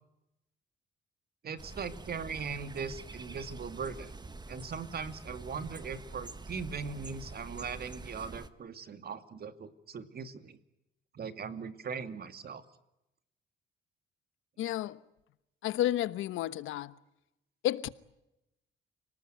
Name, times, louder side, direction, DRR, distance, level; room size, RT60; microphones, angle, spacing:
voice 1, 1.4-4.1 4.5-10.6 11.1-12.6, right 5 dB, 50° right, 2.4 m, -39 dB
sound 1, 1.6-8.5, right 3 dB, 20° right, 1.6 m, -46 dB
voice 2, 14.6-15.0 15.6-16.9 17.6-17.9, left 13 dB, 90° left, 1.1 m, -31 dB
30.0 x 19.0 x 9.2 m
cardioid pair, 90°, 20 cm